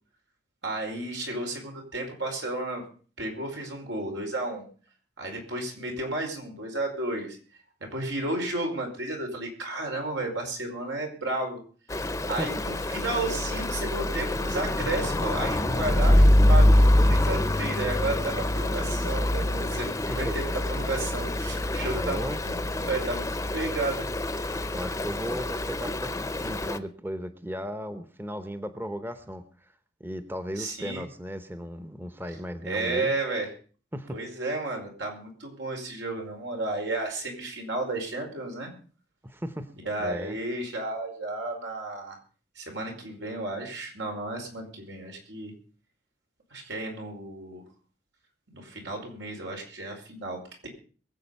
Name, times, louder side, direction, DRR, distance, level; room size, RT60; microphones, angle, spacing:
voice 1, 0.6-2.8 3.2-4.6 5.2-7.4 7.9-11.6 12.3-22.3 22.6-23.3 23.5-24.1 30.6-31.0 32.7-33.5 34.1-38.7 39.8-42.2 42.5-45.5 46.5-47.6 48.5-50.7, right 2 dB, 85° right, 1 dB, 4.9 m, -33 dB
Stream, 11.9-26.8, left 1 dB, 15° left, 0.7 m, -25 dB
voice 2, 19.9-20.3 21.8-22.4 24.7-29.7 30.0-33.1 33.9-34.2 39.2-39.7 40.0-40.4, equal, 10° right, 10 dB, 0.8 m, -36 dB
23.0 x 7.8 x 5.4 m, 0.41 s
head